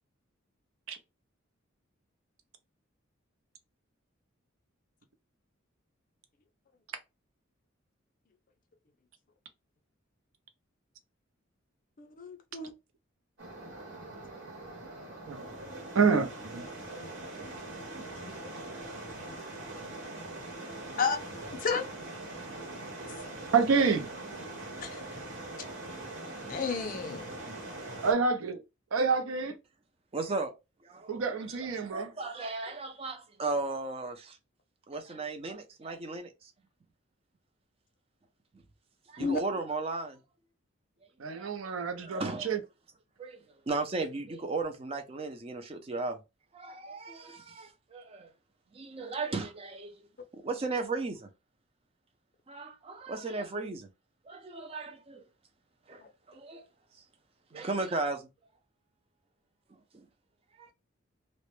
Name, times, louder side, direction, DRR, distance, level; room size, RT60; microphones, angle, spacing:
voice 1, 12.0-12.7 15.6-15.8 17.9-18.0 18.4-18.5 21.0-21.2 21.6-21.9 24.8-25.0 26.5-27.6 39.2-39.4 56.0-56.1, left 5 dB, 45° left, 0.4 m, -32 dB
sound 1, 13.4-28.1, right 2 dB, 65° right, 1.0 m, -42 dB
voice 2, 15.9-16.6 23.5-24.1 28.0-28.6 28.9-29.5 31.1-32.1 41.2-42.6, right 5 dB, 85° right, 0.5 m, -27 dB
voice 3, 30.1-30.5 30.8-31.2 31.8-34.4 34.9-36.5 39.1-40.2 41.3-42.6 43.2-43.4 43.7-46.2 46.5-48.3 48.7-49.9 50.4-51.3 52.5-53.9 54.3-55.2 55.9-56.0 56.3-56.6 57.5-58.3 59.9-60.0 60.6-60.7, right 3 dB, 30° right, 0.4 m, -36 dB
2.1 x 2.0 x 3.0 m
head